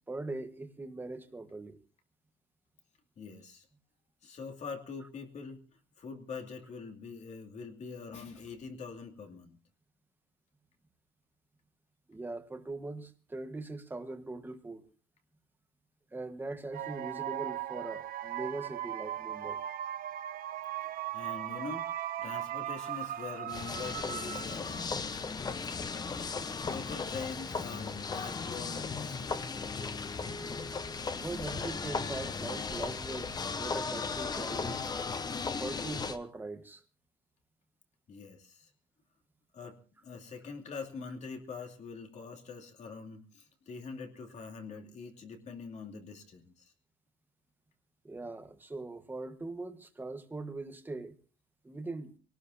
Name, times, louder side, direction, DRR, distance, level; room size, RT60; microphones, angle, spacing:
voice 1, 0.1-1.8 12.1-14.8 16.1-19.6 31.1-34.9 35.6-36.8 48.0-51.2 51.6-52.1, right 2 dB, 10° right, 1.3 m, -41 dB
voice 2, 3.2-3.6 4.2-5.6 6.0-9.6 20.8-20.9 21.1-21.9 22.2-24.9 26.6-29.5 38.1-38.7 39.5-46.4, left 5 dB, 40° left, 2.6 m, -44 dB
sound 1, 16.7-24.8, right 12 dB, 50° right, 0.9 m, -38 dB
sound 2, 23.5-36.2, left 4 dB, 20° left, 0.8 m, -36 dB
23.5 x 18.5 x 2.7 m
cardioid pair, 160°, 19 cm